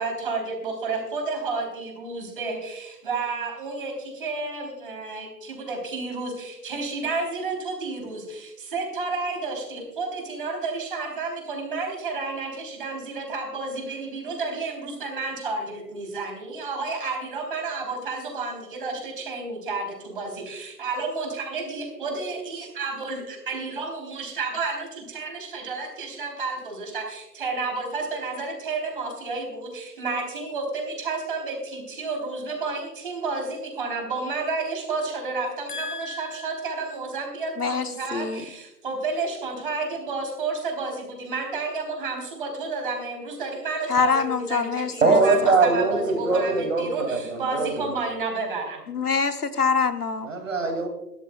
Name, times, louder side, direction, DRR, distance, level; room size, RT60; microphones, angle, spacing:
voice 1, 0.0-48.8, right 3 dB, 30° right, 3.6 m, -31 dB
voice 2, 35.7-36.5 37.6-38.4 43.9-45.6 48.9-50.3, left 5 dB, 65° left, 1.1 m, -26 dB
voice 3, 45.0-47.9 50.2-50.9, right 3 dB, 50° right, 2.5 m, -22 dB
23.5 x 13.0 x 2.3 m
figure-of-eight pair, 145°, 49 cm